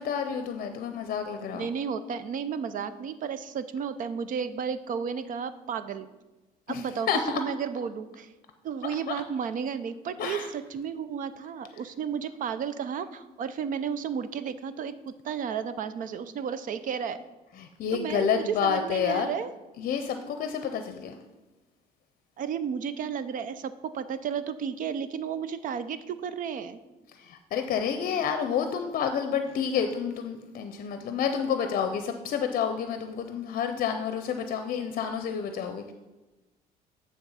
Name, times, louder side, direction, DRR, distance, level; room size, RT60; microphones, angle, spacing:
voice 1, 0.0-1.7 6.7-7.4 9.1-9.2 10.2-10.5 17.6-19.3 19.8-21.1 27.2-35.9, left 7 dB, 55° left, 7 dB, 0.6 m, -29 dB
voice 2, 1.5-6.1 6.7-7.1 7.3-8.3 8.6-17.2 17.9-19.5 22.4-26.8, right 7 dB, 55° right, 12 dB, 0.5 m, -33 dB
9.4 x 3.5 x 5.6 m, 1.1 s
cardioid pair, 110°, 17 cm